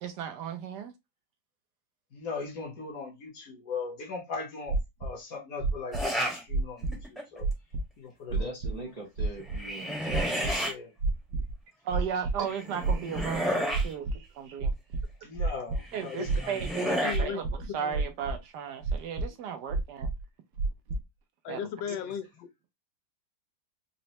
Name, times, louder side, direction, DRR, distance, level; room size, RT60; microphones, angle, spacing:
voice 1, 0.0-0.9 11.8-14.7 15.9-17.4 17.7-20.1 21.5-21.7, right 7 dB, 75° right, 1.1 m, -35 dB
voice 2, 2.1-7.5 8.0-8.5 10.1-10.9 15.2-16.5 16.9-17.1 21.8-22.1, left 4 dB, 55° left, 1.2 m, -39 dB
sound 1, 4.7-5.1 5.6-6.0 6.5-7.0 7.4-7.8 8.3-8.7 9.2-9.6 10.1-10.5 11.0-11.5 11.9-12.4 12.8-13.4 13.7-14.2 14.6-15.8 16.3-16.7 17.1-17.6 17.9-18.4 18.8-19.3 19.7-20.2 20.6-21.0, right 3 dB, 90° right, 0.6 m, -29 dB
sound 2, 5.9-6.4 6.9-7.4 9.4-10.7 12.5-13.9 15.9-17.2, equal, ahead, 0.7 m, -32 dB
voice 3, 8.3-10.7, right 2 dB, 45° right, 0.5 m, -42 dB
voice 4, 17.0-18.0 21.4-22.7, left 8 dB, 85° left, 1.3 m, -37 dB
4.1 x 2.1 x 2.7 m
omnidirectional pair, 2.0 m